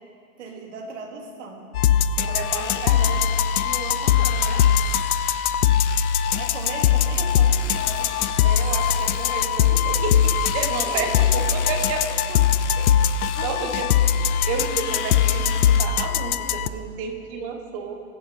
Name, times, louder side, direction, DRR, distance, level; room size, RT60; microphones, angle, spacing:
voice 1, 0.4-1.7 2.1-3.4 6.3-8.2 10.8-11.5 13.3-13.8, right 4 dB, 55° right, -1 dB, 2.7 m, -38 dB
sound 1, 1.7-16.7, left 8 dB, 85° left, 0.6 m, -21 dB
Domestic sounds home sounds, 2.2-15.8, left 7 dB, 55° left, 1.2 m, -38 dB
voice 2, 2.3-3.3 3.6-4.6 8.4-12.4 12.8-12.9 13.4-14.0 14.5-18.0, right 5 dB, 25° right, 4 dB, 1.1 m, -31 dB
24.0 x 8.2 x 4.2 m, 2.5 s
hypercardioid pair, 165°, 43 cm